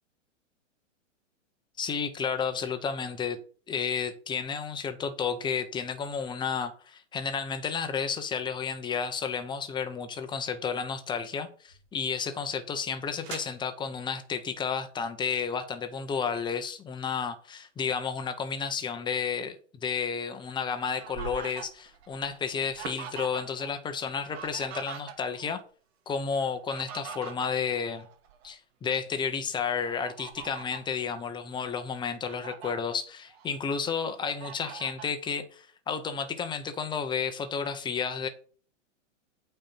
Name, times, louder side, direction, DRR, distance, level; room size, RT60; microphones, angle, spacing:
voice 1, 1.8-3.4 3.7-25.6 26.1-28.1 28.4-38.3, left 6 dB, 10° left, 0.9 m, -32 dB
sound 1, 10.5-16.5, right 7 dB, 35° right, 2.0 m, -51 dB
Fowl, 20.4-23.7 24.0-25.5 26.4-28.5 29.0-29.2 29.8-30.9 31.5-31.6 32.0-32.7 33.3-34.0 34.4-35.1, right 7 dB, 55° right, 2.1 m, -43 dB
8.6 x 4.5 x 5.7 m
hypercardioid pair, 135°, 37 cm